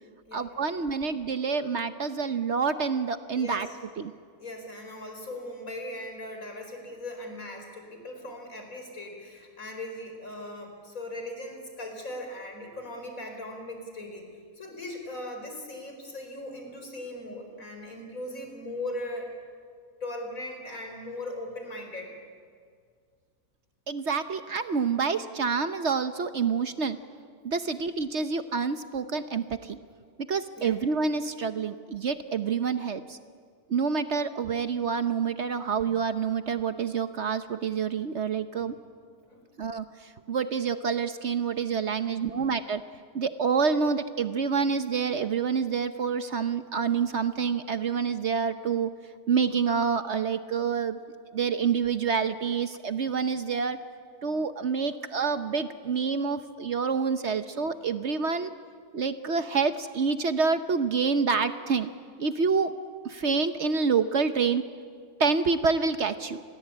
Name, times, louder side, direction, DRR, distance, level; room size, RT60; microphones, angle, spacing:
voice 1, 0.3-3.7 4.0-4.1 23.9-27.0 27.4-29.8 30.3-33.2 33.7-38.7 39.6-42.8 43.1-48.9 49.3-51.0 51.3-53.8 54.2-58.5 58.9-61.9 62.2-62.7 63.0-64.7 65.2-66.4, right 5 dB, 55° right, 10 dB, 1.1 m, -27 dB
voice 2, 3.4-3.8 4.4-14.3 14.6-19.3 20.0-22.1 30.6-30.8 39.3-39.4 42.0-42.5, left 1 dB, 65° left, 4 dB, 5.0 m, -39 dB
29.5 x 22.0 x 8.6 m, 2.1 s
omnidirectional pair, 1.5 m